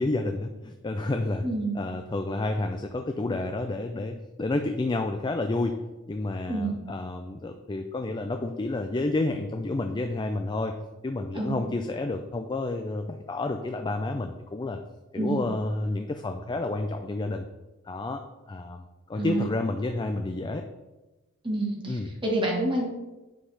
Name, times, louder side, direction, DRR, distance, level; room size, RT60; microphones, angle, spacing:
voice 1, 0.0-1.4 1.8-5.8 6.1-10.8 11.0-14.8 15.1-17.5 17.8-18.2 18.5-18.8 19.1-20.6 21.9-22.1, left 2 dB, 20° left, 5 dB, 0.3 m, -30 dB
voice 2, 1.4-1.7 6.5-6.8 11.3-11.6 15.2-15.4 19.2-19.5 21.4-22.9, right 2 dB, 25° right, -2 dB, 1.6 m, -28 dB
8.5 x 5.6 x 3.3 m, 1.1 s
head